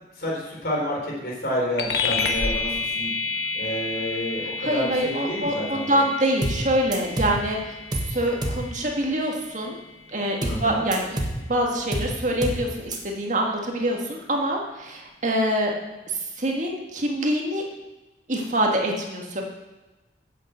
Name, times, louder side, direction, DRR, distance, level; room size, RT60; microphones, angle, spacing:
voice 1, 0.2-2.7 2.9-3.1 3.5-6.0 10.4-10.8, equal, 60° left, -3 dB, 3.8 m, -29 dB
sound 1, 1.8-11.6, left 4 dB, 75° left, 1.2 m, -31 dB
voice 2, 4.6-7.8 8.0-9.8 10.1-11.2 11.5-15.7 16.1-17.6 18.3-19.4, right 1 dB, 45° right, 0 dB, 1.7 m, -25 dB
sound 2, 6.4-6.7 6.9-7.4 7.9-8.2 8.4-8.7 10.4-10.7 10.9-11.4 11.9-12.2 12.4-12.7 12.9-13.0, right 1 dB, 25° right, 1.3 m, -27 dB
8.7 x 6.7 x 7.8 m, 1.1 s
head